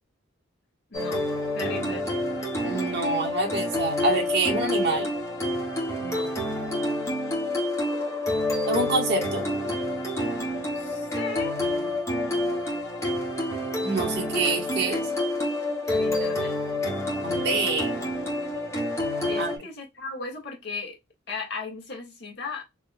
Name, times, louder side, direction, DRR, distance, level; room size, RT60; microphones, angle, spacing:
voice 1, 0.9-1.2 1.5-2.1 6.0-6.4 10.7-11.6 15.9-16.6 19.2-21.0 21.3-22.6, left 4 dB, 55° left, 1.3 m, -36 dB
sound 1, 0.9-19.6, left 1 dB, 15° left, 1.2 m, -28 dB
voice 2, 2.6-5.1 8.6-9.4 13.8-15.1 17.2-17.9 19.4-19.5, right 2 dB, 55° right, 1.2 m, -26 dB
3.7 x 2.6 x 2.6 m
head